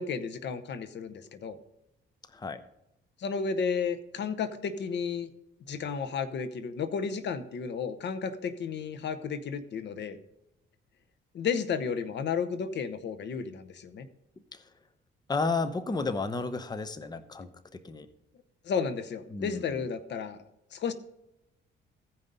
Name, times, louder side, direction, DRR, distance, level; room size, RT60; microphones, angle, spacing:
voice 1, 0.0-1.6 3.2-5.3 5.7-10.2 11.3-14.1 18.6-20.4 20.7-20.9, left 6 dB, 60° left, 11 dB, 0.9 m, -32 dB
voice 2, 15.3-18.1 19.3-19.7, left 3 dB, 20° left, 10 dB, 0.8 m, -32 dB
16.0 x 5.4 x 4.0 m, 0.88 s
cardioid pair, 90°, 20 cm